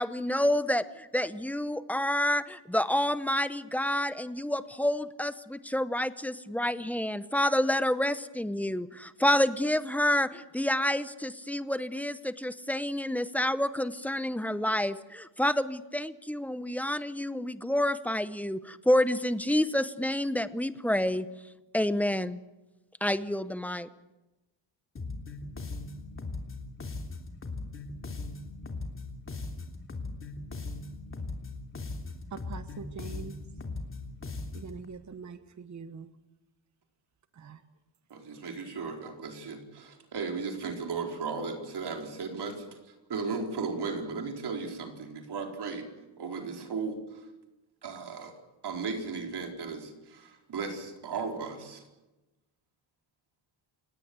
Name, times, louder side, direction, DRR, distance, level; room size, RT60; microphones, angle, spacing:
voice 1, 0.0-21.3 21.7-22.4 23.0-23.9, left 1 dB, 5° left, 0.8 m, -28 dB
sound 1, 25.0-34.8, left 3 dB, 25° left, 3.1 m, -39 dB
voice 2, 32.3-33.4 34.5-36.1 37.4-37.6, right 5 dB, 35° right, 1.2 m, -43 dB
voice 3, 38.1-42.8 43.1-45.9 46.2-47.3 47.8-48.3 48.6-51.8, right 4 dB, 50° right, 4.6 m, -36 dB
29.5 x 18.5 x 8.2 m
wide cardioid pair, 155°, 49 cm